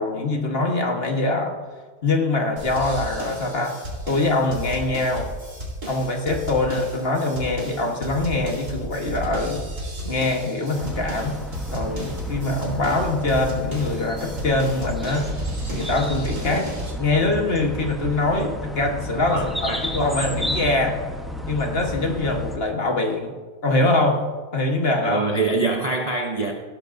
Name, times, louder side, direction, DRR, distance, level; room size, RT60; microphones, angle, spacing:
voice 1, 0.0-1.6 2.0-3.7 4.1-5.3 5.9-9.6 10.0-11.4 11.7-15.3 15.7-16.7 17.0-21.0 21.4-23.3 23.6-24.2 24.5-25.2, left 2 dB, 40° left, 2 dB, 1.4 m, -23 dB
sound 1, 2.6-16.9, right 1 dB, 50° right, 4.0 m, -34 dB
sound 2, 10.7-22.6, left 1 dB, ahead, 0.8 m, -32 dB
voice 2, 19.3-19.9 25.0-26.5, right 3 dB, 35° right, 2 dB, 0.6 m, -25 dB
17.5 x 10.5 x 2.7 m, 1.4 s
omnidirectional pair, 1.7 m